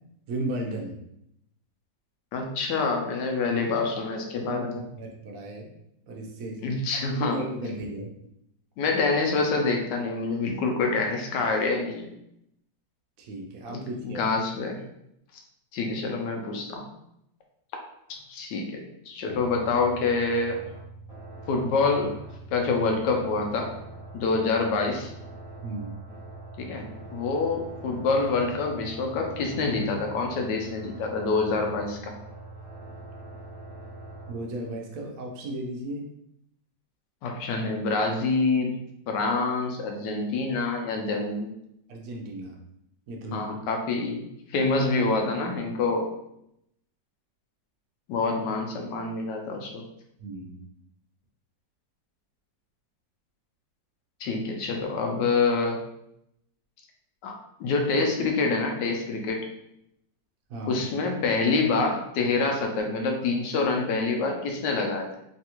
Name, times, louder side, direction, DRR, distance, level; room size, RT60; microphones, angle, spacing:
voice 1, 0.3-1.0 4.4-5.7 6.1-6.6 7.1-8.1 13.2-14.2 25.6-25.9 34.3-36.1 41.9-42.6 43.1-43.5 50.2-50.7 60.5-60.8, right 1 dB, 70° right, 1 dB, 0.8 m, -35 dB
voice 2, 2.3-4.8 6.6-7.4 8.8-12.1 13.7-14.8 15.7-16.8 18.1-20.6 21.5-22.2 22.5-23.8 24.1-25.1 26.6-32.1 37.2-38.7 39.1-41.5 43.3-46.1 48.1-49.8 54.2-55.8 57.2-59.5 60.7-65.2, left 3 dB, 75° left, 2 dB, 1.1 m, -26 dB
sound 1, 19.2-34.3, right 2 dB, 25° left, 0.7 m, -43 dB
3.3 x 2.3 x 2.9 m, 0.77 s
omnidirectional pair, 2.0 m